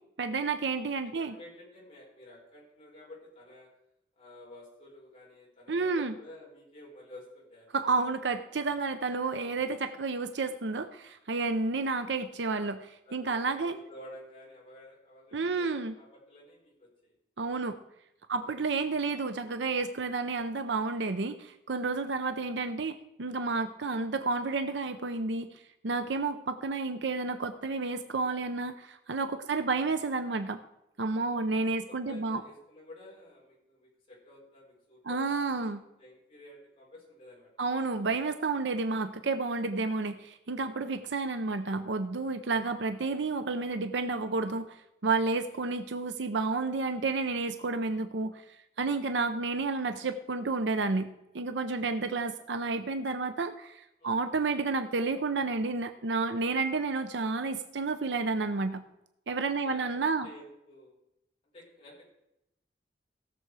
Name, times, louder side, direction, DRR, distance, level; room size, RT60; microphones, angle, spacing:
voice 1, 0.2-1.3 5.7-6.1 7.7-13.8 15.3-15.9 17.4-17.8 18.3-25.5 25.8-30.6 31.0-32.4 35.0-35.8 37.6-44.8 45.0-48.4 48.8-51.1 51.3-58.8 59.3-60.3, right 3 dB, 80° right, 9 dB, 0.7 m, -31 dB
voice 2, 1.0-3.7 4.2-7.8 11.5-11.7 13.1-13.4 13.6-17.1 18.4-18.5 29.5-29.9 31.4-37.7 40.9-41.0 45.5-45.6 48.9-49.1 51.7-52.3 54.0-54.2 59.6-61.0 61.5-62.1, left 1 dB, 30° left, -4 dB, 4.6 m, -52 dB
17.0 x 7.0 x 4.8 m, 0.86 s
head